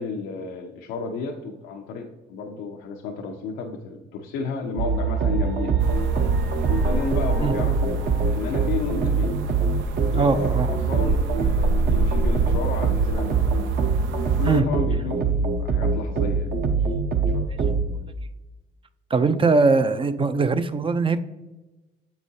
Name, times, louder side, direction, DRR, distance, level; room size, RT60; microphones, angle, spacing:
voice 1, 0.0-5.7 6.7-9.4 10.1-13.5 14.4-15.2 15.6-16.5 17.3-17.4, left 4 dB, 85° left, 1 dB, 0.6 m, -32 dB
sound 1, 4.8-17.9, right 4 dB, 50° right, 0.9 m, -23 dB
sound 2, 5.8-14.6, right 2 dB, 75° right, 0.6 m, -29 dB
voice 2, 10.1-10.7 14.4-14.7 19.1-21.2, right 4 dB, 25° right, 12 dB, 0.5 m, -21 dB
7.4 x 4.9 x 2.7 m, 1.1 s
supercardioid pair, 70°, 20 cm